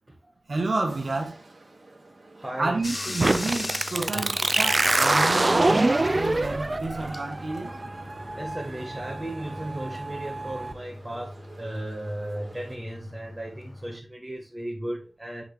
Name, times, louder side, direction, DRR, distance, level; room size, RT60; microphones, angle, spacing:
sound 1, 0.5-12.8, right 2 dB, 60° right, 2.2 m, -50 dB
voice 1, 0.5-1.4 2.6-7.7, right 2 dB, 75° right, 1.3 m, -30 dB
voice 2, 2.4-2.8 4.0-4.3 8.4-15.4, right 1 dB, 25° right, 1.7 m, -35 dB
Bathtub (filling or washing), 2.8-14.0, left 2 dB, 35° left, 0.4 m, -41 dB
sound 2, 3.2-10.7, right 2 dB, 40° right, 0.5 m, -25 dB
7.7 x 4.1 x 3.3 m
wide cardioid pair, 65°, 0 cm